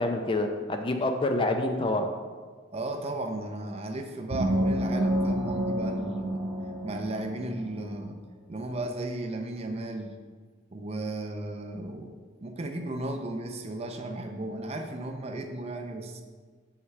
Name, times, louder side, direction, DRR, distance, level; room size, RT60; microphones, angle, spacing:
voice 1, 0.0-2.1, left 2 dB, 25° left, 5 dB, 0.5 m, -27 dB
voice 2, 2.7-6.4 6.8-8.2 8.5-10.1 10.7-12.1 12.4-16.2, right 1 dB, 30° right, 5 dB, 0.5 m, -35 dB
sound 1, 4.3-7.9, right 1 dB, 85° right, 1.0 m, -29 dB
7.8 x 5.8 x 3.2 m, 1.5 s
head